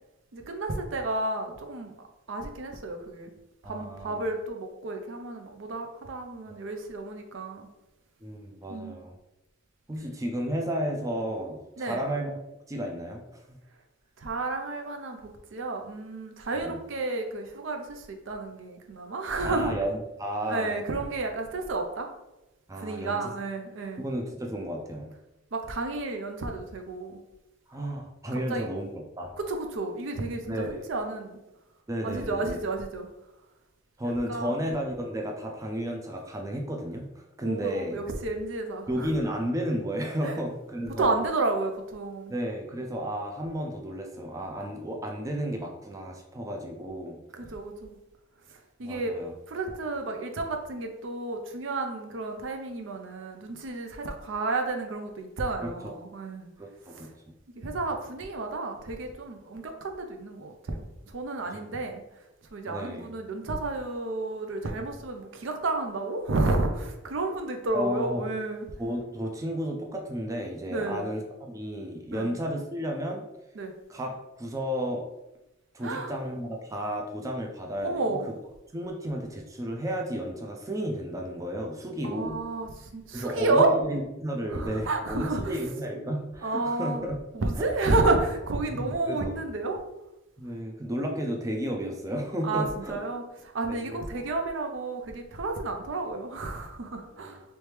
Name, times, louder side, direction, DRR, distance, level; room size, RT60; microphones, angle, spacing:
voice 1, 0.3-1.9 2.3-3.3 3.6-7.7 8.7-9.0 11.8-12.1 14.2-19.8 20.5-22.1 22.8-24.0 25.5-27.2 28.5-28.7 29.4-31.4 32.0-33.1 34.0-34.6 37.4-39.1 40.2-40.4 41.0-42.3 47.3-48.0 48.8-49.1 49.5-56.5 56.9-57.1 57.6-62.0 62.5-68.7 70.7-71.1 72.1-72.4 73.6-73.7 75.8-76.1 77.8-78.3 82.0-83.7 84.5-85.6 86.4-87.1 87.3-89.8 92.4-97.4, right 2 dB, 75° right, 4 dB, 0.5 m, -31 dB
voice 2, 3.6-4.2 8.2-9.2 9.9-12.4 12.7-13.6 16.5-16.8 19.4-20.8 22.7-23.3 24.0-25.1 27.7-28.9 29.2-29.3 30.5-30.8 31.9-32.6 34.0-38.0 38.9-41.2 42.3-47.2 48.8-49.3 55.6-55.9 56.6-57.1 61.4-61.6 62.7-63.1 67.7-68.3 68.8-73.2 73.9-74.1 74.4-75.0 75.7-78.2 78.7-82.4 83.1-87.2 87.9-88.0 88.7-89.3 90.4-93.0 93.7-94.3 97.1-97.4, equal, 15° right, 1 dB, 0.3 m, -33 dB
3.1 x 3.1 x 3.3 m, 0.96 s
head